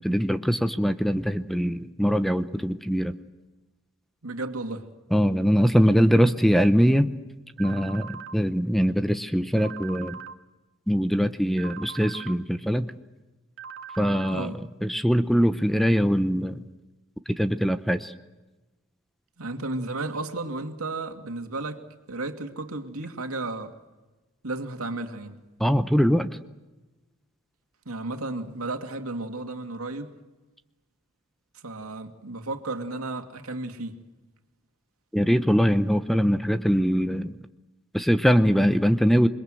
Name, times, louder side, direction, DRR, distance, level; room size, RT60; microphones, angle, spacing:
voice 1, 0.0-3.2 5.1-7.1 7.6-10.2 10.9-12.9 14.0-16.6 17.3-18.1 25.6-26.4 35.1-37.3 37.9-39.3, equal, ahead, 0.8 m, -22 dB
voice 2, 4.2-4.9 14.3-14.6 19.4-21.8 22.1-23.8 24.4-25.4 27.9-30.1 31.6-34.0, right 2 dB, 80° right, 2.5 m, -33 dB
sound 1, 7.6-8.3 9.6-10.3 11.6-12.3 13.6-14.3, right 7 dB, 60° right, 1.7 m, -40 dB
28.0 x 22.0 x 7.8 m
head